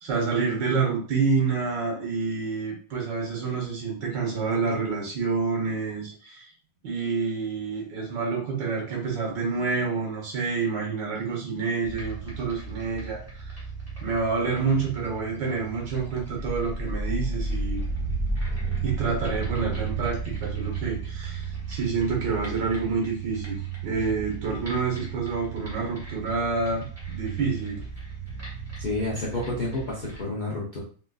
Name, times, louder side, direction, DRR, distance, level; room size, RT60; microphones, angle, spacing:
voice 1, 0.0-6.5 6.8-13.6 14.0-17.8 18.8-23.6 23.8-27.8, right 4 dB, 85° right, 0 dB, 1.8 m, -28 dB
sound 1, 11.8-30.2, right 4 dB, 10° right, 1.2 m, -33 dB
voice 2, 28.8-30.8, left 2 dB, 45° left, -5 dB, 0.6 m, -30 dB
4.2 x 2.6 x 2.3 m, 0.41 s
omnidirectional pair, 1.8 m